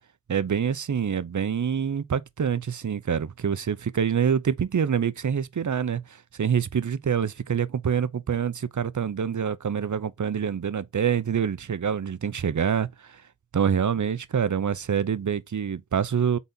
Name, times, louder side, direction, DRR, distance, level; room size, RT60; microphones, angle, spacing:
voice 1, 0.3-13.2 13.5-16.4, right 7 dB, 60° right, 0.7 m, -26 dB
8.2 x 4.0 x 3.9 m
wide cardioid pair, 80°, 33 cm